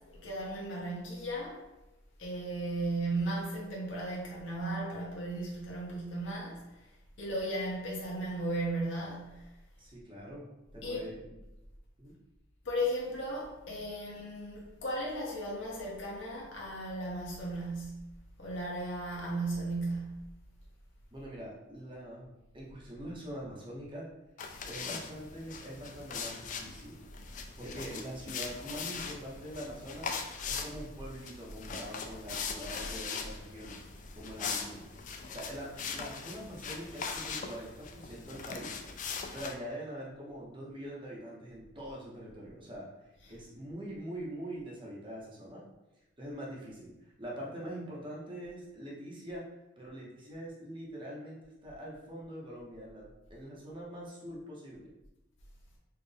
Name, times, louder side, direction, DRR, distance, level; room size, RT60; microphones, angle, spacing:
voice 1, 0.0-1.6 2.2-6.7 7.2-9.5 10.8-11.1 12.6-18.1 18.4-20.3 43.2-43.4, right 1 dB, 65° left, -4 dB, 0.8 m, -36 dB
voice 2, 9.8-10.5 10.7-11.1 12.0-12.1 21.1-24.0 24.4-27.0 27.6-30.1 30.5-33.8 34.1-34.8 35.3-42.9 43.3-45.6 46.2-49.4 49.8-54.9, equal, 25° right, -5 dB, 0.9 m, -44 dB
sound 1, 24.4-39.5, left 5 dB, 40° left, 0.3 m, -41 dB
4.4 x 2.4 x 3.4 m, 0.98 s
head